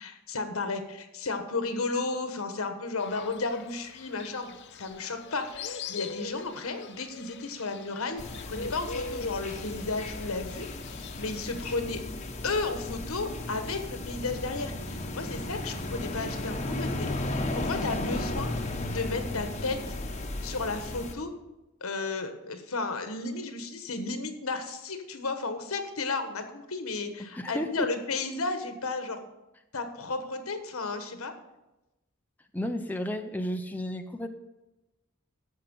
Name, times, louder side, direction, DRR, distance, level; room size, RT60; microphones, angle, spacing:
voice 1, 0.0-10.7 11.2-12.0 12.4-18.5 18.9-19.9 20.4-21.3 21.8-29.2 29.7-31.3, left 3 dB, 80° left, 7 dB, 1.3 m, -33 dB
Fowl, 3.0-11.7, left 4 dB, 55° left, 0.7 m, -42 dB
sound 1, 8.2-21.1, left 2 dB, 30° left, 0.9 m, -35 dB
Bowed string instrument, 13.1-19.7, right 2 dB, 75° right, 1.5 m, -57 dB
voice 2, 27.4-27.9 32.5-34.3, equal, 10° left, 5 dB, 0.5 m, -32 dB
13.5 x 5.6 x 5.4 m, 0.99 s
head